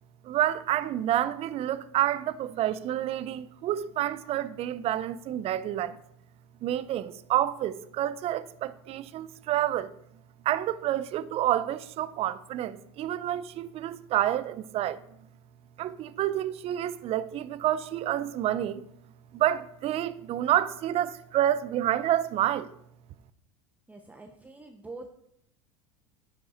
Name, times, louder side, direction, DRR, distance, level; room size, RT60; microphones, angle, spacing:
voice 1, 0.2-6.0 6.6-9.9 10.4-15.0 15.8-18.8 19.3-22.7, right 12 dB, 45° right, 0.5 m, -28 dB
voice 2, 23.9-25.1, right 2 dB, 10° right, 0.7 m, -45 dB
10.0 x 5.4 x 4.3 m
hypercardioid pair, 90°, 15 cm